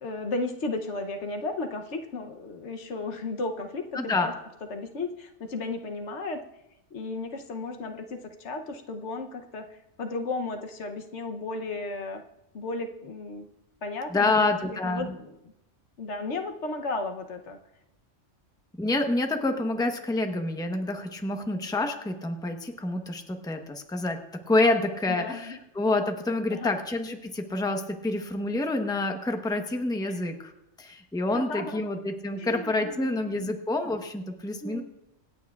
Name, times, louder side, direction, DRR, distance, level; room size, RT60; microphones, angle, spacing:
voice 1, 0.0-3.9 4.2-4.3 4.7-6.4 6.9-12.2 12.5-13.5 13.8-15.3 16.0-17.6 25.1-25.6 26.5-26.8 30.0-30.2 31.3-31.9 32.4-33.5 34.6-34.8, left 3 dB, 70° left, 5 dB, 1.1 m, -34 dB
voice 2, 3.9-4.3 14.1-15.1 18.8-24.2 24.5-30.5 30.8-34.8, left 2 dB, 5° left, 4 dB, 0.8 m, -28 dB
26.0 x 9.1 x 2.4 m, 0.86 s
omnidirectional pair, 1.3 m